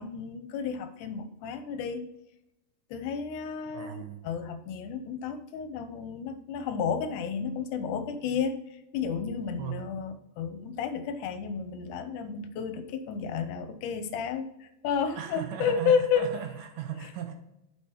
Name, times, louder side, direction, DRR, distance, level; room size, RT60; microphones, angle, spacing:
voice 1, 0.0-2.1 2.9-16.3, left 6 dB, 80° left, 2.2 m, -32 dB
voice 2, 3.7-4.2 9.6-9.9 15.2-17.3, right 9 dB, 90° right, 2.6 m, -37 dB
8.3 x 6.0 x 3.0 m
omnidirectional pair, 3.7 m